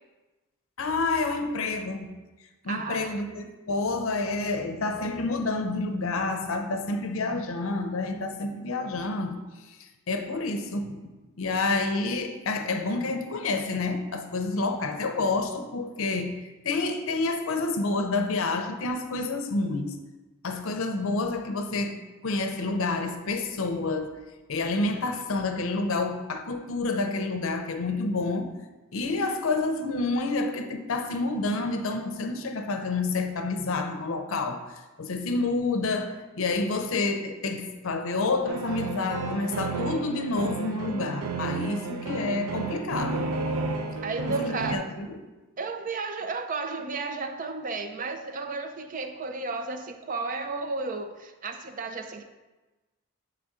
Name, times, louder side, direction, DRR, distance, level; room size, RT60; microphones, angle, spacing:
voice 1, 0.8-2.1 2.6-9.4 10.1-11.1 11.4-20.0 20.4-24.2 24.5-28.5 28.9-34.6 35.0-43.3 44.4-45.2, left 3 dB, 65° left, 0.6 m, -29 dB
voice 2, 2.7-3.1 44.0-44.9 45.6-52.2, right 3 dB, 40° right, 0.4 m, -33 dB
sound 1, 38.5-44.8, right 3 dB, 90° right, 0.6 m, -32 dB
8.8 x 3.4 x 3.6 m
head